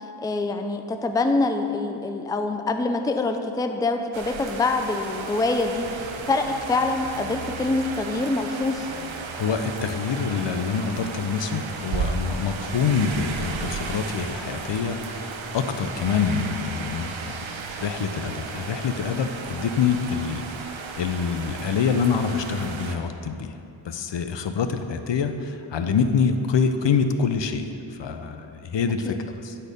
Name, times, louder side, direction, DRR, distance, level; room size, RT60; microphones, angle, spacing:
voice 1, 0.2-5.9 6.3-8.9 29.1-29.2, left 3 dB, 10° left, 7 dB, 0.4 m, -25 dB
sound 1, 4.1-23.0, right 5 dB, 65° right, 0.8 m, -34 dB
voice 2, 9.3-17.4 17.8-20.5 21.0-23.6 23.8-29.6, left 6 dB, 60° left, 8 dB, 0.6 m, -26 dB
9.8 x 4.4 x 5.1 m, 3.0 s
cardioid pair, 50°, 50 cm